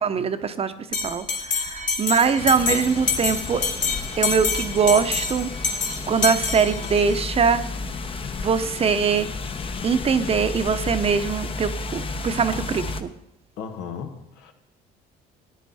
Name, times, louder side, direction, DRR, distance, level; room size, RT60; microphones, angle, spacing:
voice 1, 0.0-0.7 1.0-3.6 4.2-5.5 6.1-7.6 8.4-9.3 9.8-13.1, right 6 dB, 35° right, 10 dB, 0.8 m, -22 dB
Bell, 0.9-7.2, left 5 dB, 50° left, 1.8 m, -27 dB
sound 1, 2.4-13.0, left 3 dB, 30° left, 0.8 m, -32 dB
voice 2, 13.6-14.5, left 6 dB, 85° left, 6 dB, 1.5 m, -35 dB
14.0 x 9.6 x 4.3 m, 0.85 s
cardioid pair, 110°, 17 cm